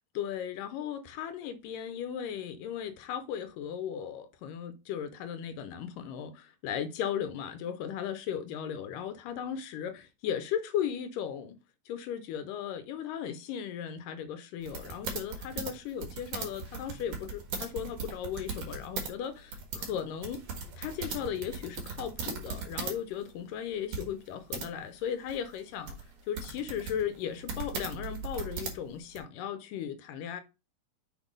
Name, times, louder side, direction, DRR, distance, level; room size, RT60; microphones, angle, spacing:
voice 1, 0.2-11.6 11.9-20.4 20.8-25.9 26.3-30.4, left 9 dB, 75° left, 2.1 m, -36 dB
sound 1, 14.6-19.1 19.4-23.0 23.3-23.4 23.9-24.7 25.3-29.2, right 4 dB, 60° right, 3.0 m, -38 dB
7.2 x 3.8 x 5.2 m
omnidirectional pair, 4.1 m